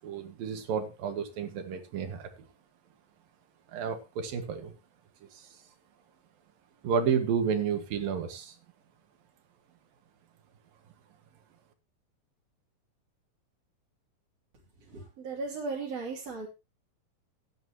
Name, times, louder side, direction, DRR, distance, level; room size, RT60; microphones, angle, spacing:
voice 1, 0.0-2.3 3.7-4.8 5.2-5.6 6.8-8.6, right 6 dB, 80° right, 7 dB, 3.6 m, -31 dB
voice 2, 14.8-16.5, right 4 dB, 45° right, -5 dB, 4.1 m, -36 dB
17.0 x 10.5 x 3.1 m, 0.26 s
omnidirectional pair, 4.1 m